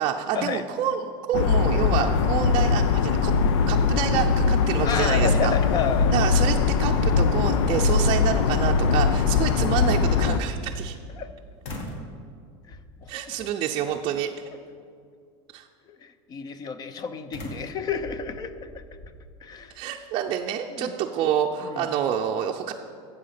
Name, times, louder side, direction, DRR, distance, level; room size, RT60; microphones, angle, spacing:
voice 1, 0.0-3.3 3.7-5.5 6.1-11.0 13.1-14.3 15.5-15.7 19.7-22.7, right 9 dB, 35° right, 0 dB, 0.5 m, -28 dB
sound 1, 1.3-10.4, left 5 dB, 85° left, 0.7 m, -21 dB
voice 2, 4.8-6.1 11.2-11.3 12.7-13.5 15.9-18.8 19.4-19.7 20.7-20.9 21.6-21.9, left 6 dB, 25° left, 12 dB, 0.6 m, -31 dB
sound 2, 10.4-11.3 11.6-12.1 12.7-13.1 13.9-14.3 17.3-19.2, equal, 45° left, 1.8 m, -41 dB
13.5 x 7.8 x 5.7 m, 2.3 s
supercardioid pair, 150°, 15 cm